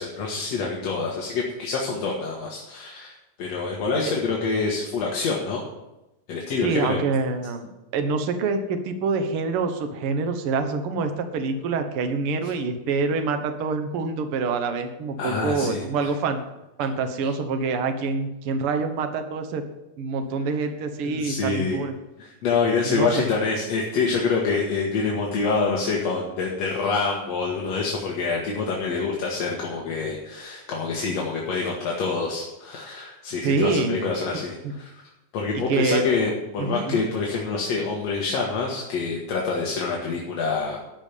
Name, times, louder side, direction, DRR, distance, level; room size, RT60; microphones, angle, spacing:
voice 1, 0.0-5.6 6.3-7.0 12.4-12.5 15.2-16.1 17.2-17.3 21.0-21.8 22.2-40.8, left 4 dB, 55° left, -2 dB, 2.3 m, -26 dB
voice 2, 6.6-16.4 16.8-19.6 20.0-21.9 22.9-23.2 33.4-34.1 35.5-36.0 36.6-37.1, right 4 dB, 60° right, 7 dB, 1.4 m, -26 dB
12.5 x 6.5 x 8.4 m, 0.97 s
omnidirectional pair, 4.1 m